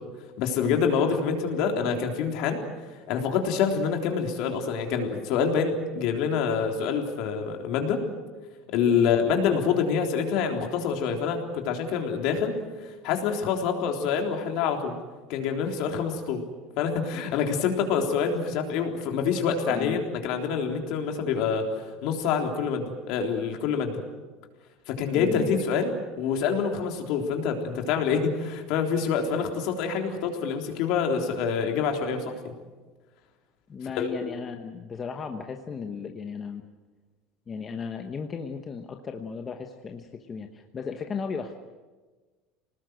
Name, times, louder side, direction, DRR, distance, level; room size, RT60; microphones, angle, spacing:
voice 1, 0.4-2.6 3.1-8.0 8.7-12.6 12.8-14.9 15.3-16.4 16.8-21.7 22.0-23.9 24.9-32.5 34.0-34.3, left 6 dB, 55° left, 3 dB, 3.6 m, -26 dB
voice 2, 25.1-25.6 33.7-36.6 37.5-41.6, left 5 dB, 20° left, 4 dB, 1.1 m, -35 dB
26.0 x 19.5 x 7.9 m, 1.3 s
cardioid pair, 170°, 0 cm